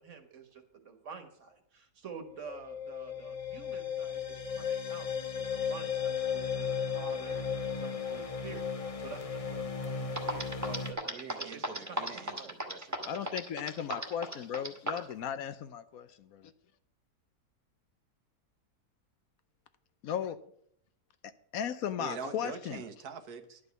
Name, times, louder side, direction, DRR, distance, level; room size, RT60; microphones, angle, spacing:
voice 1, 0.0-7.4 7.7-8.6 9.0-12.5, right 5 dB, 50° right, 7 dB, 1.7 m, -48 dB
sound 1, 2.2-10.9, left 6 dB, 35° left, 0.6 m, -35 dB
sound 2, 9.8-9.9 10.2-15.1, right 1 dB, 10° right, 1.4 m, -34 dB
voice 2, 11.1-13.3 22.0-23.6, right 6 dB, 80° right, 8 dB, 1.5 m, -44 dB
voice 3, 13.1-16.5 20.0-20.4 21.5-22.8, left 8 dB, 70° left, 12 dB, 1.1 m, -36 dB
11.0 x 5.3 x 8.0 m, 0.68 s
omnidirectional pair, 1.6 m